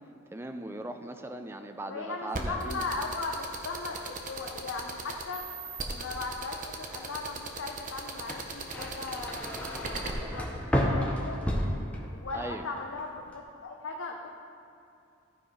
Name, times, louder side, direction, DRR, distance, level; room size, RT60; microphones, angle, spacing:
voice 1, 0.3-2.8 12.3-12.7, right 1 dB, 10° right, 6 dB, 0.4 m, -39 dB
voice 2, 1.9-5.4 5.9-10.5 10.8-11.4 12.1-14.3, left 3 dB, 70° left, 1 dB, 0.6 m, -38 dB
sound 1, 2.3-10.1, right 4 dB, 40° right, 0.9 m, -37 dB
sound 2, 8.3-12.4 12.8-13.3, equal, 5° left, 0.8 m, -31 dB
14.5 x 4.8 x 5.0 m, 2.6 s
head